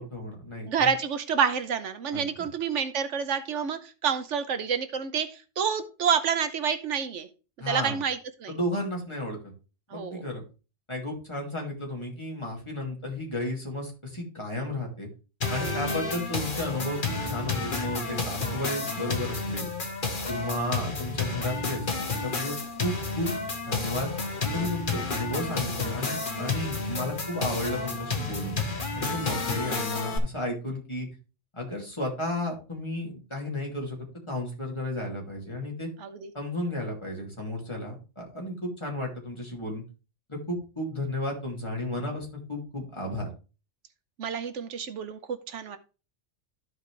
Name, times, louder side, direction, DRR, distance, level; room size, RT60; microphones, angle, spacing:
voice 1, 0.0-0.9 2.1-2.5 7.6-8.0 8.5-9.4 9.9-10.4 10.9-15.1 15.5-19.7 20.3-23.3 23.7-24.1 24.4-28.6 29.0-31.1 31.5-34.0 34.3-35.9 36.3-39.8 40.3-43.3, left 1 dB, 25° left, -1 dB, 2.8 m, -33 dB
voice 2, 0.6-7.3 7.6-8.5 9.9-10.2 15.6-15.8 36.0-36.3 44.2-45.8, right 7 dB, 80° right, 10 dB, 1.2 m, -28 dB
sound 1, 15.4-30.2, left 3 dB, 45° left, 1.4 m, -31 dB
13.5 x 5.0 x 3.3 m, 0.33 s
omnidirectional pair, 1.2 m